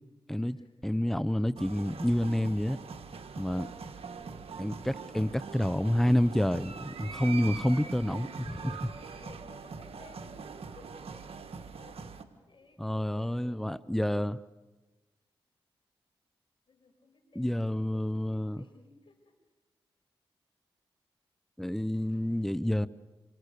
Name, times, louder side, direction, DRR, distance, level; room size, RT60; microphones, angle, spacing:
voice 1, 0.3-2.8 3.4-3.7 4.6-8.6 12.8-14.4 17.4-18.6 21.6-22.9, equal, 5° left, 0.9 m, -29 dB
sound 1, 1.6-12.2, right 5 dB, 75° right, 1.7 m, -43 dB
voice 2, 3.3-3.8 8.2-8.7 9.0-11.2 11.8-13.9 16.7-19.3, left 3 dB, 60° left, 5.5 m, -58 dB
28.0 x 24.0 x 6.8 m
cardioid pair, 45°, 10 cm